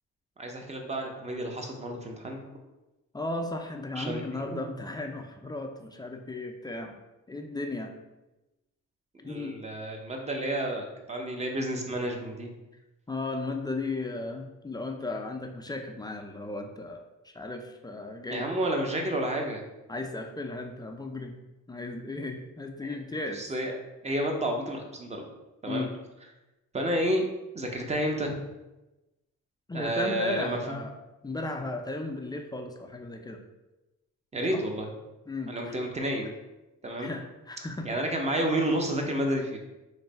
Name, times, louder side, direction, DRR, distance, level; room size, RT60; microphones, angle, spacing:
voice 1, 0.4-2.4 3.9-4.6 9.2-12.5 18.3-19.6 22.8-23.0 23.3-23.7 24.0-25.3 25.6-25.9 26.7-27.3 27.5-28.4 29.7-30.8 34.3-34.9 35.5-36.3 36.8-37.1 37.8-39.6, right 1 dB, 20° right, 2 dB, 0.7 m, -30 dB
voice 2, 3.1-7.0 7.3-7.9 9.2-9.6 13.1-18.5 19.9-23.4 25.7-25.9 29.7-30.9 31.2-33.4 34.5-34.6 35.3-35.7 37.0-37.9, left 2 dB, 15° left, 3 dB, 0.4 m, -35 dB
3.1 x 2.6 x 4.1 m, 1.0 s
cardioid pair, 90°, 30 cm